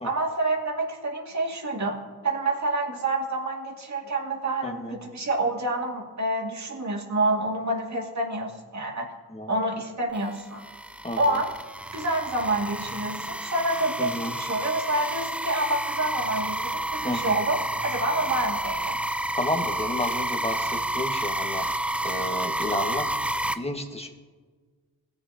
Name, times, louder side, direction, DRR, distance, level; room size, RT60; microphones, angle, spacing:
voice 1, 0.0-2.0 2.2-9.1 9.5-10.6 11.2-11.5 11.9-19.0, right 2 dB, 50° right, -1 dB, 2.6 m, -28 dB
voice 2, 4.6-5.0 9.3-9.5 11.0-11.4 14.0-14.3 17.0-17.3 19.4-21.7 22.0-23.1 23.5-24.1, left 1 dB, 15° left, 3 dB, 1.9 m, -31 dB
sound 1, 10.1-23.5, right 1 dB, 5° right, 0.6 m, -30 dB
17.5 x 7.1 x 3.0 m, 1.5 s
supercardioid pair, 45°, 37 cm